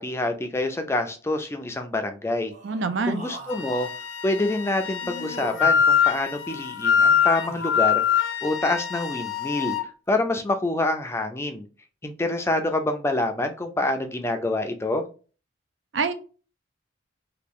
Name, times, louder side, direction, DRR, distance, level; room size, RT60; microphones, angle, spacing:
voice 1, 0.0-2.5 3.0-3.9 4.2-9.8 10.1-11.6 12.0-15.0, left 2 dB, 15° left, 6 dB, 0.4 m, -26 dB
Human voice, 2.5-4.0 5.0-5.9 6.8-7.9, equal, 40° right, 1.4 m, -42 dB
voice 2, 2.6-3.2 15.9-16.1, right 4 dB, 70° right, 9 dB, 0.5 m, -25 dB
Wind instrument woodwind instrument, 3.5-9.9, left 7 dB, 85° left, 0.5 m, -24 dB
2.9 x 2.4 x 3.6 m, 0.36 s
head